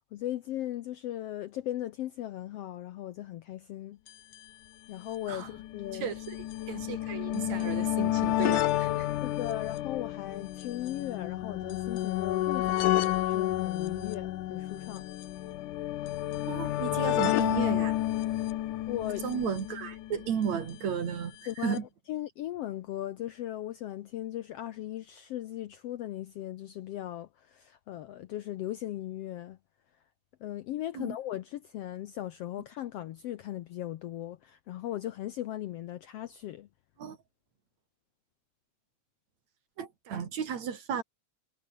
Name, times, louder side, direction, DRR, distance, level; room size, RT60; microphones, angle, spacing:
voice 1, 0.1-4.0 4.9-6.1 9.2-15.0 18.9-19.3 21.5-21.8 22.1-29.6 30.4-36.7, left 13 dB, 70° left, 1.5 m, -38 dB
sound 1, 4.1-4.2 4.3-4.4 5.3-20.5 21.5-21.6 21.8-21.9, left 14 dB, 90° left, 2.6 m, -31 dB
voice 2, 5.9-9.1 16.5-17.9 19.2-21.8 31.0-31.2 37.0-37.2 39.8-41.0, right 7 dB, 60° right, 3.7 m, -34 dB
omnidirectional pair, 3.5 m